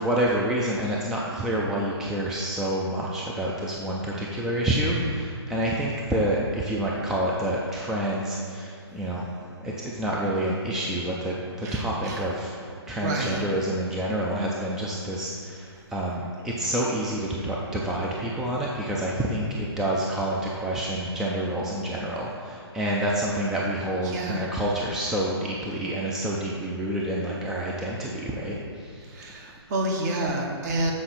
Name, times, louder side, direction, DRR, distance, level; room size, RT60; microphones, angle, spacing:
voice 1, 0.0-9.3 9.6-12.5 12.9-29.1, right 1 dB, 5° right, -4 dB, 0.3 m, -28 dB
voice 2, 11.6-12.2 12.9-13.4 24.0-24.4 29.1-30.9, right 2 dB, 40° right, 0 dB, 1.2 m, -29 dB
7.7 x 4.8 x 4.2 m, 2.3 s
hypercardioid pair, 145°, 14 cm